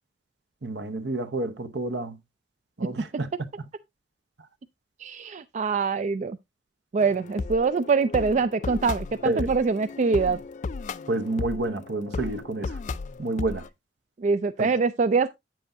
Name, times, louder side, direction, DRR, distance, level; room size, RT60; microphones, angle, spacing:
voice 1, 0.6-2.2 2.8-3.3 3.6-3.7 9.2-9.5 11.1-12.7 13.2-13.6 14.6-14.7, right 2 dB, 65° right, 0.9 m, -29 dB
voice 2, 5.0-6.4 6.9-10.4 14.2-15.3, right 4 dB, 40° right, 0.4 m, -24 dB
sound 1, 7.0-13.7, left 4 dB, 45° left, 0.4 m, -35 dB
8.9 x 7.6 x 2.6 m
head